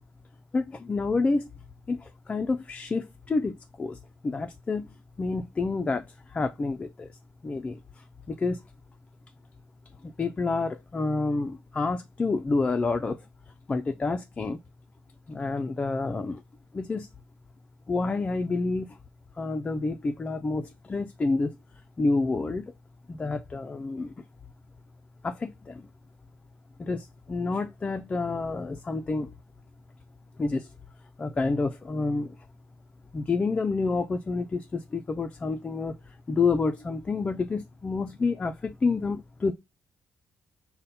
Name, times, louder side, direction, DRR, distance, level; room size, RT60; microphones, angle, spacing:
voice 1, 0.5-1.5 1.9-4.0 4.2-7.1 7.4-8.6 10.0-13.2 13.7-14.6 15.3-16.4 16.7-17.1 17.9-19.0 19.4-21.5 22.0-22.7 23.1-24.2 25.2-25.9 26.8-29.3 30.4-30.7 31.2-32.4 33.1-39.5, left 3 dB, 25° left, 0.4 m, -29 dB
5.2 x 2.1 x 4.1 m
cardioid pair, 105°, 4 cm